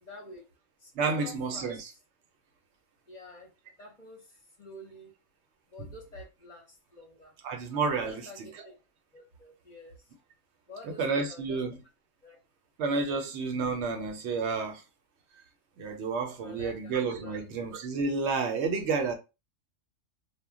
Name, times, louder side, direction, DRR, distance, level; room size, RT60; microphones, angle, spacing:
voice 1, 0.0-0.4 0.8-1.9 3.1-3.5 3.8-5.1 5.7-7.3 8.0-8.7 9.1-10.0 10.7-11.6 12.2-12.4 16.4-17.4, left 2 dB, 40° left, 0.7 m, -49 dB
voice 2, 0.9-1.9 7.4-8.5 11.0-11.8 12.8-14.8 15.8-19.1, right 4 dB, 65° right, 0.8 m, -30 dB
2.2 x 2.1 x 3.5 m
omnidirectional pair, 1.3 m